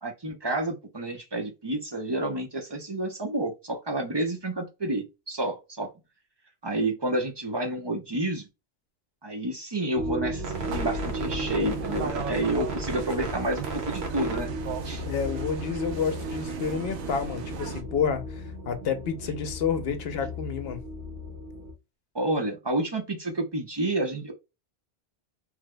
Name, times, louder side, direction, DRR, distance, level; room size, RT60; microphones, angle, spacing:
voice 1, 0.0-5.9 6.6-8.5 9.2-14.5 14.8-15.0 22.1-24.3, right 1 dB, 30° right, 0.5 m, -30 dB
sound 1, 10.0-21.7, right 1 dB, 70° right, 1.1 m, -35 dB
sound 2, 10.5-17.8, right 6 dB, 90° right, 1.0 m, -37 dB
voice 2, 15.1-20.8, left 6 dB, 65° left, 0.8 m, -29 dB
3.2 x 2.0 x 3.3 m
omnidirectional pair, 1.1 m